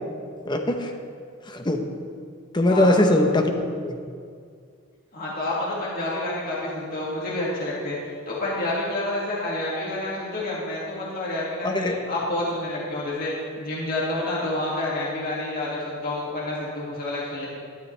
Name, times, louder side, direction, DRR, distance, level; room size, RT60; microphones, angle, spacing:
voice 1, 0.5-0.9 1.5-1.8 2.5-3.6 3.8-4.0 11.6-12.0, left 1 dB, 20° left, 4 dB, 0.8 m, -21 dB
voice 2, 2.7-3.0 5.1-8.0 8.3-17.5, left 1 dB, 45° left, -6 dB, 2.2 m, -29 dB
12.5 x 12.5 x 3.3 m, 2.2 s
head